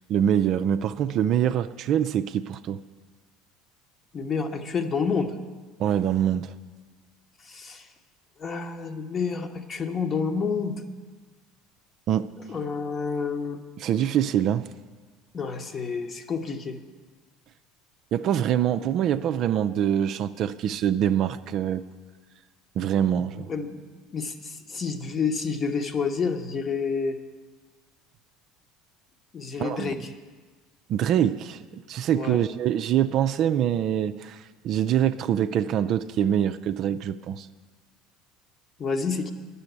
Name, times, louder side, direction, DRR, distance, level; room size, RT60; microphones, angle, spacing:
voice 1, 0.1-2.8 5.8-6.5 12.1-12.3 13.8-14.7 18.1-21.8 22.8-23.5 29.6-29.9 30.9-37.5, right 10 dB, 50° right, 11 dB, 0.4 m, -24 dB
voice 2, 4.1-5.4 7.4-7.9 8.4-10.8 12.5-13.6 15.3-16.8 23.5-23.8 24.1-27.2 29.3-30.1 32.1-32.4 38.8-39.3, left 5 dB, 35° left, 8 dB, 0.9 m, -29 dB
10.5 x 6.9 x 9.3 m, 1.4 s
figure-of-eight pair, 65°, 0 cm